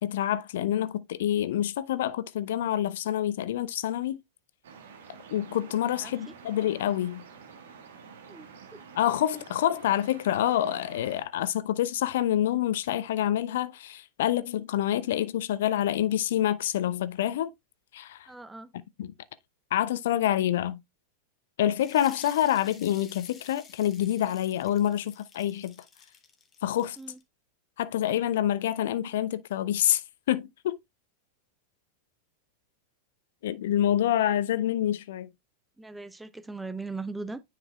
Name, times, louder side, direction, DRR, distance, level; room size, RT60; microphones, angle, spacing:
voice 1, 0.0-4.2 5.3-7.2 9.0-17.5 17.9-18.3 19.0-19.1 19.7-20.8 21.6-25.7 26.6-27.0 27.8-30.0 30.3-30.8 33.4-35.3, left 11 dB, 55° left, 0.4 m, -27 dB
sound 1, 4.6-11.2, right 6 dB, 60° right, 1.5 m, -49 dB
voice 2, 6.0-6.3 8.3-8.8 9.3-9.4 18.3-18.7 27.0-27.2 35.8-37.4, right 3 dB, 5° right, 0.5 m, -39 dB
sound 2, 21.8-27.2, left 6 dB, 20° left, 1.3 m, -52 dB
9.7 x 4.8 x 2.3 m
figure-of-eight pair, 90°, 0 cm